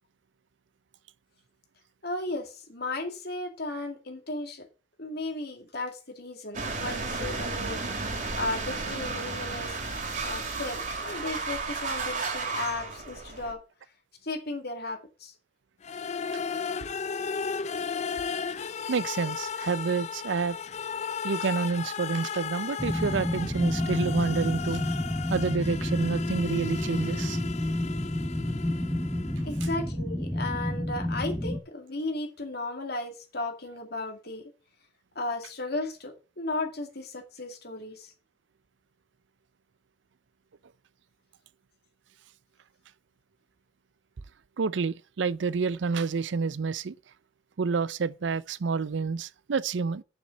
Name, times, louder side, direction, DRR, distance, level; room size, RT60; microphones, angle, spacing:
voice 1, 2.0-4.7 5.0-7.8 8.4-9.8 10.2-13.6 14.2-15.3 29.4-34.4 35.2-38.1, left 2 dB, 55° left, 2.4 m, -35 dB
sound 1, 6.5-13.5, right 3 dB, 45° right, 2.6 m, -33 dB
sound 2, 15.8-29.7, left 6 dB, 35° left, 0.4 m, -35 dB
voice 2, 18.9-20.6 21.2-24.8 25.3-27.4 44.6-46.9 47.6-50.0, right 5 dB, 65° right, 0.5 m, -29 dB
sound 3, 22.8-31.6, left 1 dB, 5° left, 1.0 m, -30 dB
7.0 x 6.1 x 7.7 m
head